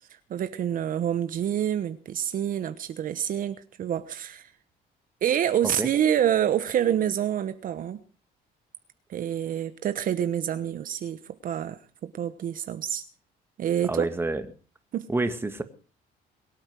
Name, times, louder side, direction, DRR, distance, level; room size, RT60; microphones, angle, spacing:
voice 1, 0.3-4.5 5.2-8.0 9.1-13.0 13.6-14.0 14.9-15.0, right 10 dB, 55° right, 11 dB, 1.1 m, -27 dB
voice 2, 13.9-14.4 15.1-15.6, right 2 dB, 15° right, 9 dB, 1.9 m, -27 dB
22.5 x 8.8 x 6.0 m, 0.39 s
cardioid pair, 110°, 17 cm